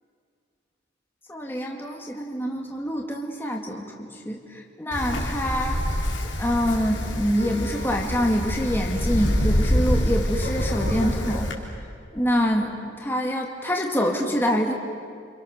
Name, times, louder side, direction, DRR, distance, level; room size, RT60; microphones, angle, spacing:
voice 1, 1.3-5.8 6.4-11.5 12.1-14.7, equal, 10° left, 0 dB, 2.2 m, -26 dB
Wind, 4.9-11.5, equal, 75° left, 3.7 m, -26 dB
Wind instrument woodwind instrument, 7.4-11.8, right 3 dB, 55° right, 1.6 m, -46 dB
30.0 x 26.5 x 6.7 m, 2.2 s
head